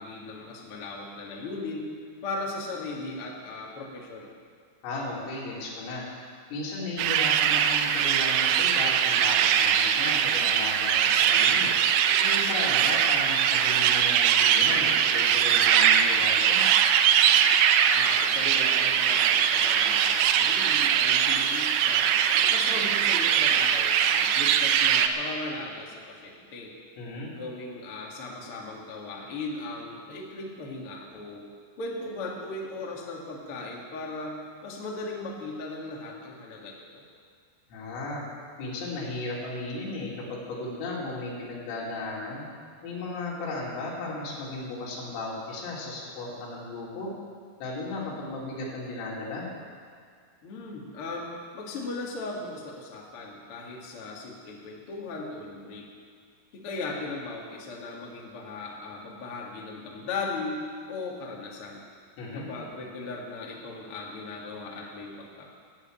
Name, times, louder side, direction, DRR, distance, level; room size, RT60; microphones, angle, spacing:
voice 1, 0.0-1.9 2.2-4.3 17.9-22.2 22.5-26.8 27.3-31.4 31.8-37.0 50.4-55.9 56.5-61.8 62.3-65.5, left 3 dB, 45° left, -2 dB, 1.8 m, -37 dB
voice 2, 4.8-11.7 12.2-16.6 27.0-27.3 31.1-31.2 37.7-38.2 38.6-42.5 42.8-47.1 47.6-49.5 62.2-62.5, left 2 dB, 85° left, -5 dB, 5.5 m, -35 dB
sound 1, 7.0-25.1, right 9 dB, 80° right, 2.9 m, -22 dB
15.0 x 7.9 x 8.9 m, 2.1 s
omnidirectional pair, 5.7 m